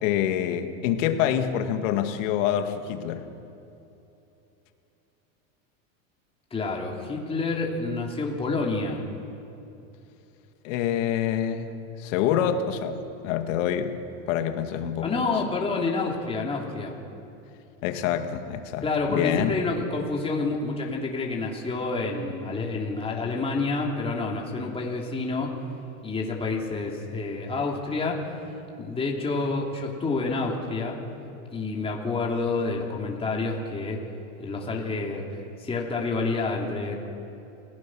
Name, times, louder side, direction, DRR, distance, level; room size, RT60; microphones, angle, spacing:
voice 1, 0.0-3.3 10.6-11.7 12.0-14.0 14.3-15.2 17.8-19.5, left 9 dB, 65° left, 7 dB, 2.0 m, -26 dB
voice 2, 6.5-9.0 15.0-16.9 18.8-25.5 26.0-28.2 28.8-31.0 31.5-34.0 34.4-36.9, left 3 dB, 15° left, -2 dB, 3.0 m, -28 dB
28.0 x 17.0 x 6.3 m, 2.9 s
supercardioid pair, 135°, 40 cm